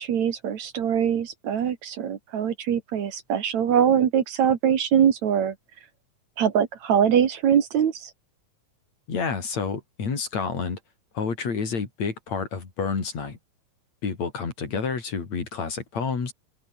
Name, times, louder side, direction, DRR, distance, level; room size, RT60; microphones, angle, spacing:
voice 1, 0.0-5.5 6.4-8.1, right 8 dB, 60° right, 2.9 m, -23 dB
voice 2, 9.1-10.8 11.1-13.4 14.0-16.3, left 5 dB, 55° left, 5.1 m, -29 dB
omnidirectional pair, 3.7 m